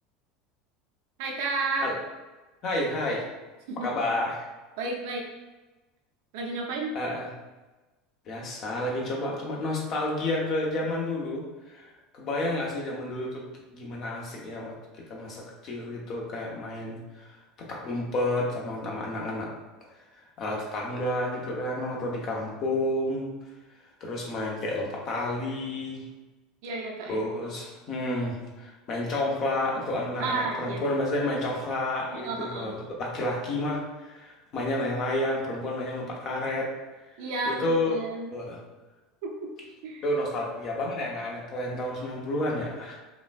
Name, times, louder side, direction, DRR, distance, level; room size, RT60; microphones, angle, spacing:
voice 1, 1.2-1.9 3.7-3.9 4.8-5.2 6.3-7.0 26.6-27.3 30.2-30.9 32.1-32.7 37.2-38.3 39.2-39.5 39.8-40.0, right 3 dB, 60° right, 0 dB, 0.7 m, -32 dB
voice 2, 2.6-3.2 3.8-4.5 6.9-7.3 8.3-13.4 13.7-19.5 20.1-23.3 24.0-26.0 27.1-36.7 37.5-38.0 38.3-38.6 40.0-43.0, left 1 dB, 40° left, -2 dB, 0.9 m, -30 dB
5.2 x 2.4 x 2.4 m, 1.2 s
figure-of-eight pair, 70°, 0 cm